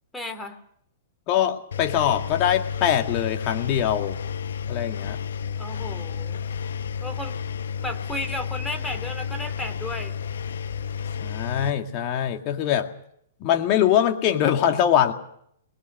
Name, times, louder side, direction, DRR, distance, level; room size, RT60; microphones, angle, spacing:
voice 1, 0.1-0.6 5.6-6.4 7.0-7.4 7.8-10.1, left 1 dB, 5° left, 6 dB, 2.7 m, -34 dB
voice 2, 1.3-4.2 4.7-5.2 11.2-12.9 13.4-15.1, left 10 dB, 35° left, 5 dB, 2.0 m, -22 dB
Engine, 1.7-11.7, left 7 dB, 65° left, 1.0 m, -31 dB
24.5 x 20.5 x 6.6 m, 0.68 s
figure-of-eight pair, 110°, 0 cm